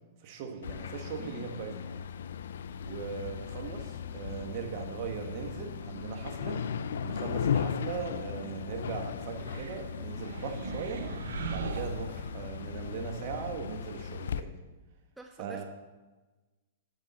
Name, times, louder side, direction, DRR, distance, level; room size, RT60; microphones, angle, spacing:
voice 1, 0.2-2.0 2.8-6.6 7.0-11.1 11.5-14.6 15.4-15.6, right 6 dB, 50° right, 3 dB, 1.4 m, -39 dB
sound 1, 0.6-14.4, left 7 dB, 75° left, 0.4 m, -37 dB
voice 2, 1.2-1.5 15.2-15.6, right 3 dB, 5° right, 4 dB, 0.5 m, -47 dB
sound 2, 9.3-12.7, right 5 dB, 75° right, 0.7 m, -40 dB
8.9 x 7.4 x 4.2 m, 1.2 s
hypercardioid pair, 125°, 0 cm